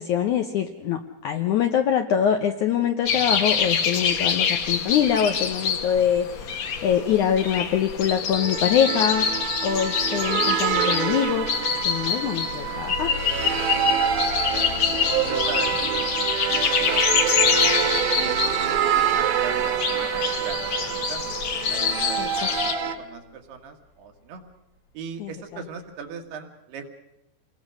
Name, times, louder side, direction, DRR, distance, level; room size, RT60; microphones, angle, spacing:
voice 1, 0.0-11.5 11.8-13.1 22.2-22.3 25.2-25.3, left 8 dB, 75° left, 6 dB, 1.8 m, -24 dB
sound 1, 3.1-22.7, left 7 dB, 55° left, 2.1 m, -26 dB
sound 2, 8.3-23.0, right 9 dB, 60° right, 2.6 m, -26 dB
sound 3, 12.9-24.8 25.5-25.6 26.1-26.2, left 4 dB, 90° left, 4.2 m, -42 dB
voice 2, 14.7-24.4 24.9-26.9, right 6 dB, 80° right, 4 dB, 3.7 m, -40 dB
28.0 x 20.0 x 6.4 m, 0.91 s
omnidirectional pair, 4.6 m